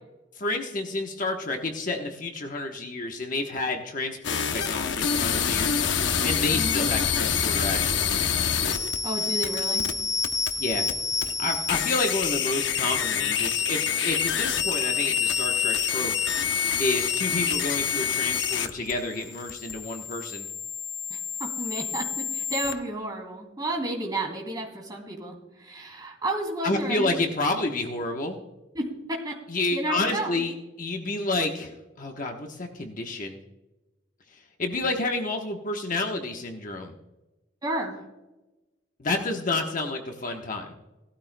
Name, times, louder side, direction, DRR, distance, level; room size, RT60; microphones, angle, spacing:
voice 1, 0.4-5.8 6.2-8.3 10.6-10.9 11.4-16.1 16.8-20.5 26.6-28.4 29.5-31.7 32.0-33.4 34.3-36.9 39.0-40.7, left 2 dB, 45° left, 3 dB, 1.1 m, -30 dB
sound 1, 4.2-22.7, left 7 dB, 70° left, 0.8 m, -27 dB
voice 2, 9.0-9.9 21.1-27.1 28.7-28.8 29.2-29.3 29.7-30.4 37.6-38.0, right 1 dB, 20° right, 0 dB, 2.7 m, -32 dB
18.0 x 13.0 x 2.2 m, 1.0 s
head